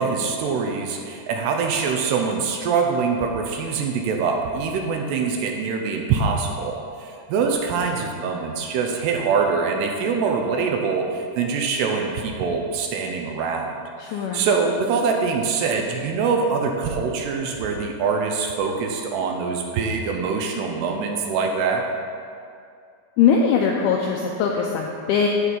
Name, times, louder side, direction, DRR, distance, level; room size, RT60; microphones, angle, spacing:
voice 1, 0.0-13.8 14.1-21.9, right 5 dB, 80° right, 2 dB, 2.7 m, -24 dB
voice 2, 14.0-14.5 23.2-25.3, left 6 dB, 90° left, 0 dB, 2.2 m, -21 dB
14.0 x 4.7 x 5.2 m, 2.3 s
omnidirectional pair, 5.2 m